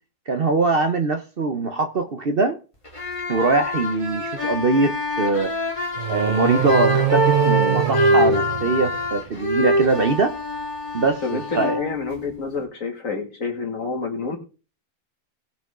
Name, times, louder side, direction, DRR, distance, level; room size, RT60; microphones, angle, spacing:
voice 1, 0.3-2.6 3.3-5.5 6.1-10.3 10.9-11.8, right 3 dB, 45° right, 8 dB, 0.9 m, -22 dB
sound 1, 2.8-12.6, left 1 dB, 20° left, 2.1 m, -25 dB
sound 2, 5.9-9.3, right 12 dB, 70° right, 0.4 m, -24 dB
voice 2, 11.2-14.4, left 4 dB, 60° left, 3 dB, 2.5 m, -28 dB
18.5 x 6.2 x 3.7 m, 0.34 s
omnidirectional pair, 1.6 m